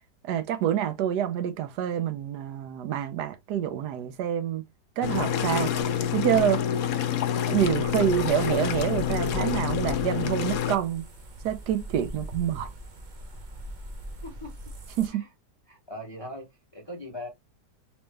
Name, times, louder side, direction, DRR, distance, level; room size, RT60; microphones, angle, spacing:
voice 1, 0.2-4.6 5.0-5.7 6.1-6.6 7.5-11.0 11.4-12.7 15.0-15.2, right 10 dB, 75° right, 1.1 m, -27 dB
sound 1, 5.0-10.8, left 9 dB, 65° left, 0.9 m, -27 dB
sound 2, 7.5-15.1, right 1 dB, 50° right, 0.5 m, -41 dB
voice 2, 14.2-14.5 15.1-15.3 15.7-16.5 16.7-17.3, left 1 dB, 35° left, 0.4 m, -39 dB
3.1 x 3.1 x 3.2 m
omnidirectional pair, 1.9 m